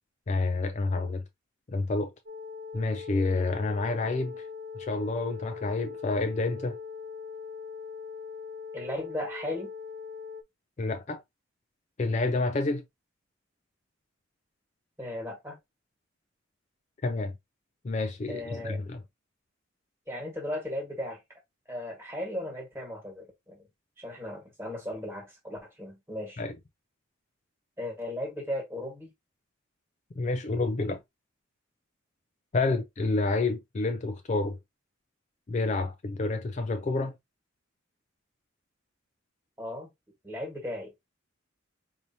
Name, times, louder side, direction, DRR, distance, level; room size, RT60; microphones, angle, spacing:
voice 1, 0.3-1.2 1.7-2.1 2.7-4.5 4.8-6.8 10.8-11.2 12.0-12.8 17.0-17.3 17.8-19.0 26.4-26.5 30.2-31.0 32.5-34.6 35.5-37.1, left 3 dB, 35° left, 0.4 m, -29 dB
sound 1, 2.3-10.4, left 5 dB, 55° right, 0.6 m, -41 dB
voice 2, 8.7-9.7 15.0-15.6 18.3-18.8 20.1-21.2 21.7-23.6 24.0-26.4 27.8-29.1 39.6-39.9 40.2-41.1, left 1 dB, 10° right, 1.6 m, -36 dB
4.8 x 2.7 x 2.7 m
head